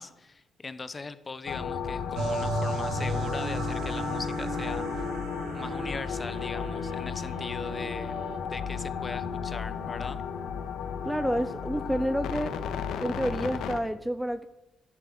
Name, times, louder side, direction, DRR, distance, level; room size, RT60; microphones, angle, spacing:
voice 1, 0.0-5.1 5.5-10.2, left 4 dB, 25° left, 13 dB, 1.0 m, -40 dB
sound 1, 1.5-13.8, left 7 dB, 85° left, 1.4 m, -34 dB
sound 2, 2.1-9.1, left 2 dB, 45° left, 2.7 m, -51 dB
sound 3, 2.1-8.4, right 2 dB, 80° right, 2.0 m, -35 dB
voice 2, 11.0-12.5 13.0-14.5, equal, 5° right, 12 dB, 0.5 m, -29 dB
13.5 x 10.5 x 7.5 m, 0.98 s
cardioid pair, 140°, 0 cm